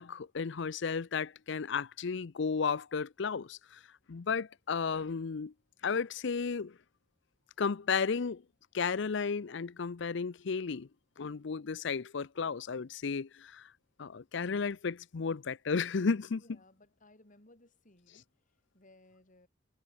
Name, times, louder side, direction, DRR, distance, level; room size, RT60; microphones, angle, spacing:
voice 1, 0.0-3.8 4.1-5.5 5.8-6.8 7.6-8.4 8.7-10.9 11.2-13.7 14.0-16.4, left 5 dB, 65° left, 0.6 m, -33 dB
voice 2, 16.4-18.3 18.7-19.5, left 2 dB, 45° left, 5.7 m, -61 dB
head